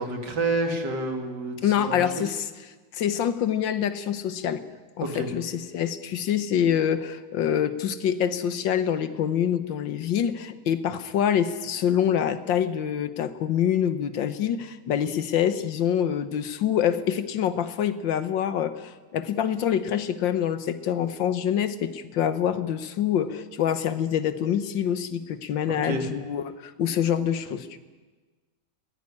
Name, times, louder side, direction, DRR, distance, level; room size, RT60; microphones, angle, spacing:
voice 1, 0.0-2.2 5.0-5.3 25.8-26.0, right 2 dB, 65° right, 4 dB, 3.2 m, -29 dB
voice 2, 1.6-4.6 5.0-27.8, left 9 dB, 90° left, 12 dB, 1.8 m, -26 dB
20.5 x 17.0 x 9.9 m, 1.4 s
omnidirectional pair, 2.0 m